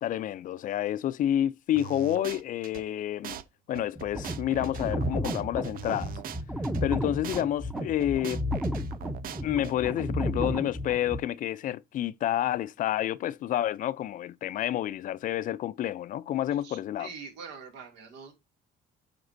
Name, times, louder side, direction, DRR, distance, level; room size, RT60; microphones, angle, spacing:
voice 1, 0.0-3.4 3.7-6.1 6.8-8.4 9.1-17.1, left 12 dB, 50° left, 0.4 m, -29 dB
sound 1, 1.8-2.8 3.2-3.4 3.7-6.8 7.2-7.4 7.7-9.7, right 10 dB, 60° right, 0.6 m, -41 dB
sound 2, 4.0-11.2, equal, 5° right, 0.6 m, -33 dB
voice 2, 16.6-18.3, right 5 dB, 90° right, 2.3 m, -44 dB
7.8 x 5.2 x 2.6 m
cardioid pair, 110°, 17 cm